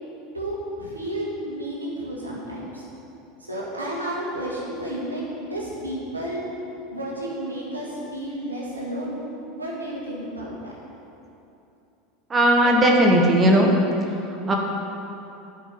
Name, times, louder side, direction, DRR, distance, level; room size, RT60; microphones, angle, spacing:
voice 1, 0.3-2.8 3.4-6.4 6.9-9.2 9.5-10.7 12.6-12.7, right 1 dB, 85° right, -4 dB, 2.0 m, -32 dB
voice 2, 12.3-13.7 14.1-14.6, right 1 dB, 25° right, 1 dB, 1.3 m, -18 dB
9.2 x 5.6 x 7.9 m, 2.8 s
figure-of-eight pair, 75°, 0 cm